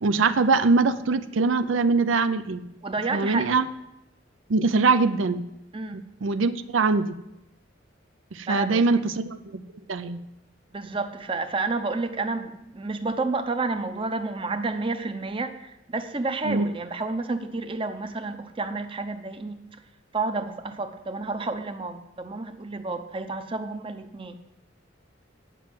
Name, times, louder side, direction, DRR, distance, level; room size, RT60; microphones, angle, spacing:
voice 1, 0.0-2.6 3.1-3.7 4.5-5.4 5.9-7.2 8.3-9.6 9.9-10.2 16.4-16.7, right 4 dB, 85° right, 11 dB, 0.6 m, -23 dB
voice 2, 2.8-3.7 5.7-6.0 8.5-9.0 10.7-19.6 20.1-24.4, right 3 dB, 30° right, 8 dB, 0.7 m, -30 dB
9.2 x 6.0 x 7.6 m, 0.86 s
head